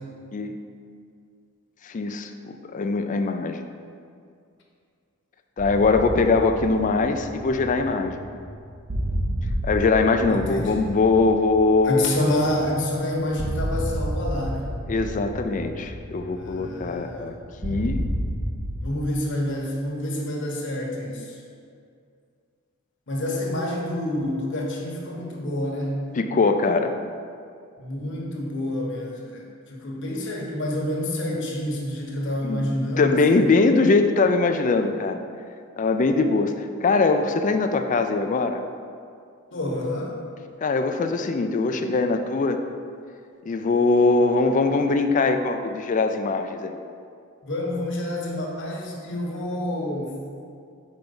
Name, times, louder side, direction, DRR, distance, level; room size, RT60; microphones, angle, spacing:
voice 1, 1.8-3.7 5.6-8.2 9.6-12.1 14.9-17.3 17.6-18.1 26.2-27.0 32.4-35.2 35.8-38.6 40.6-42.6 43.5-46.8, left 3 dB, 35° left, 7 dB, 0.4 m, -22 dB
sound 1, 5.6-18.8, equal, 30° right, 0.5 m, -31 dB
voice 2, 10.3-10.8 11.8-14.7 16.3-17.4 18.8-21.4 23.1-26.0 27.8-33.6 39.5-40.2 47.4-50.2, left 1 dB, 60° left, -1 dB, 1.1 m, -28 dB
5.2 x 4.5 x 5.4 m, 2.3 s
head